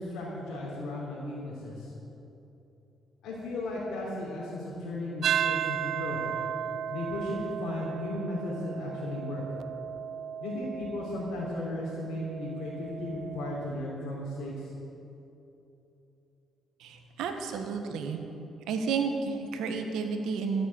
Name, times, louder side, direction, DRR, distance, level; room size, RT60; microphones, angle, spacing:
voice 1, 0.0-1.9 3.2-6.2 6.9-9.4 10.4-14.7, left 1 dB, 85° left, -7 dB, 3.5 m, -35 dB
sound 1, 5.2-13.7, right 9 dB, 60° right, 0.4 m, -35 dB
voice 2, 16.8-18.2 18.7-20.7, right 5 dB, 90° right, 5 dB, 1.5 m, -31 dB
14.0 x 8.0 x 8.7 m, 2.9 s
cardioid pair, 90°, 0 cm